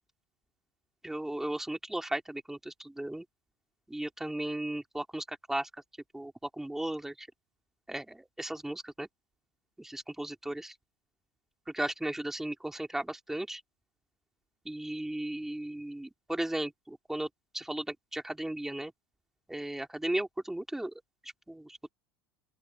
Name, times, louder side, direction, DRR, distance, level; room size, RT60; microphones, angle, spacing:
voice 1, 1.0-3.2 3.9-5.7 6.1-7.3 7.9-9.1 9.8-10.7 11.7-13.6 14.6-17.3 17.5-18.9 19.5-20.9 21.2-21.9, right 1 dB, 5° right, 3.3 m, -36 dB
open air
supercardioid pair, 120°, 8 cm